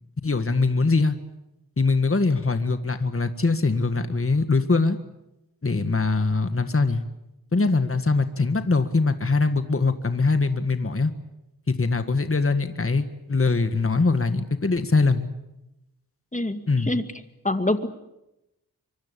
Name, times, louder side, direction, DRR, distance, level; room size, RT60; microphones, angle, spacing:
voice 1, 0.2-1.2 1.8-5.0 5.6-7.0 7.5-11.1 11.7-15.3 16.7-16.9, left 3 dB, 35° left, 9 dB, 1.7 m, -22 dB
voice 2, 16.3-17.0 17.4-17.9, left 2 dB, 20° left, 8 dB, 2.3 m, -25 dB
24.5 x 24.5 x 8.4 m, 0.91 s
wide cardioid pair, 70°, 37 cm